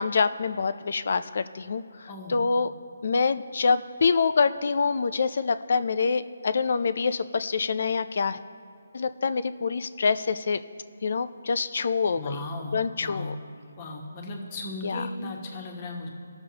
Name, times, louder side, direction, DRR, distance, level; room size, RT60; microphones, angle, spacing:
voice 1, 0.0-2.7 3.0-8.4 8.9-10.6 11.0-12.4 12.7-13.3 14.8-15.1, left 5 dB, 50° left, 13 dB, 0.4 m, -26 dB
voice 2, 2.1-2.4 12.1-13.3 13.8-16.1, left 2 dB, 25° left, 1 dB, 1.2 m, -36 dB
20.0 x 6.7 x 2.9 m, 2.4 s
hypercardioid pair, 170°, 0 cm